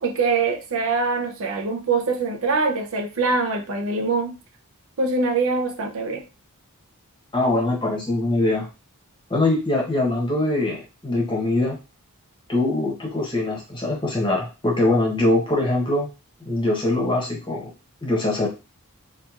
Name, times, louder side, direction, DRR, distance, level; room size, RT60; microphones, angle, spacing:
voice 1, 0.0-4.4 5.0-6.2, right 4 dB, 65° right, 3 dB, 0.6 m, -23 dB
voice 2, 7.3-8.7 9.3-11.8 12.5-16.1 16.4-17.7 18.0-18.5, left 2 dB, 20° left, -2 dB, 0.9 m, -22 dB
2.9 x 2.4 x 2.4 m, 0.30 s
head